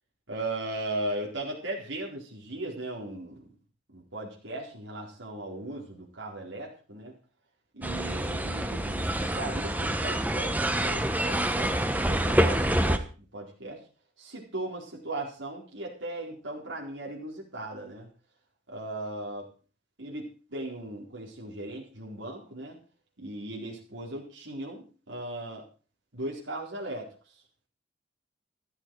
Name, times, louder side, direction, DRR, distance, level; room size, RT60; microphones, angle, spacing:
voice 1, 0.3-3.5 3.9-7.1 7.7-11.8 12.0-13.0 13.3-13.8 14.2-18.1 18.7-19.5 20.0-20.2 20.5-22.8 23.2-25.6 26.1-27.1, right 1 dB, 85° right, -3 dB, 4.3 m, -37 dB
sound 1, 7.8-13.0, right 1 dB, 10° right, 1.2 m, -27 dB
14.0 x 13.5 x 4.8 m, 0.37 s
head